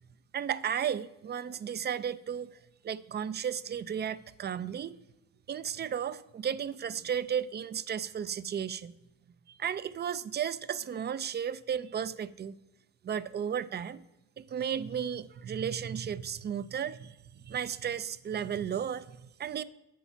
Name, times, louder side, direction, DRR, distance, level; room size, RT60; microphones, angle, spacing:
voice 1, 0.3-2.6 2.8-5.0 5.5-8.9 9.5-12.5 13.0-14.0 14.4-19.6, right 8 dB, 35° right, 0.4 m, -34 dB
8.4 x 5.8 x 5.7 m
cardioid pair, 90°, 30 cm